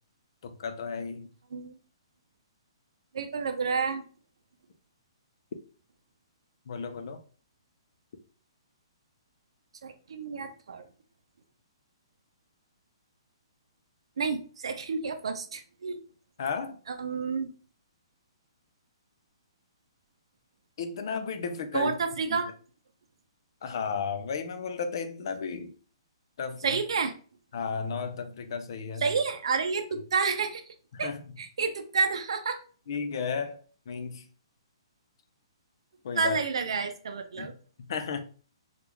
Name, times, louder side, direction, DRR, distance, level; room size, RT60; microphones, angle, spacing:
voice 1, 0.4-1.3 6.7-7.2 16.4-16.8 20.8-21.9 23.6-25.7 26.4-26.8 27.5-29.0 30.9-31.2 32.9-34.2 36.0-36.4 37.4-37.5 37.9-38.2, left 5 dB, 55° left, 0.5 m, -33 dB
voice 2, 3.1-4.0 9.8-10.8 14.2-16.0 16.9-17.5 21.7-22.5 26.6-27.1 29.0-30.6 31.0-31.1 31.4-32.6 36.1-37.5, right 5 dB, 75° right, 0.5 m, -29 dB
3.5 x 2.4 x 3.0 m
hypercardioid pair, 165°, 3 cm